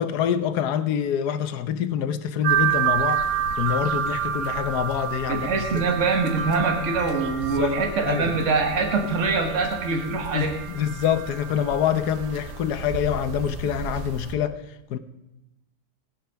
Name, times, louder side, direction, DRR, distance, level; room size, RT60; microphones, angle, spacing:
voice 1, 0.0-3.2 3.6-5.8 7.5-8.3 10.3-14.6 14.9-15.0, left 9 dB, 80° left, 1.3 m, -26 dB
sound 1, 2.4-14.3, right 8 dB, 90° right, 1.8 m, -29 dB
voice 2, 5.3-10.6, right 4 dB, 50° right, 1.8 m, -24 dB
16.5 x 10.0 x 5.7 m
omnidirectional pair, 1.7 m